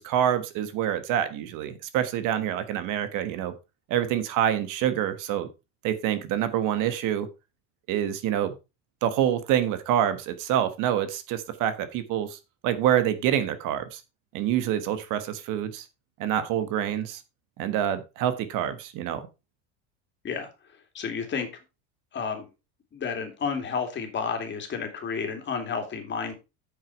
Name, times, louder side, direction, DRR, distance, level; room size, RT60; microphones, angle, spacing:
voice 1, 0.0-3.5 3.9-5.5 5.8-7.3 7.9-8.5 9.0-14.0 14.3-15.8 16.2-17.2 17.6-19.3, right 10 dB, 55° right, 11 dB, 1.4 m, -26 dB
voice 2, 20.9-21.5 22.1-22.5 22.9-26.3, left 6 dB, 30° left, 4 dB, 2.6 m, -31 dB
8.7 x 6.2 x 4.7 m, 0.28 s
supercardioid pair, 130°, 37 cm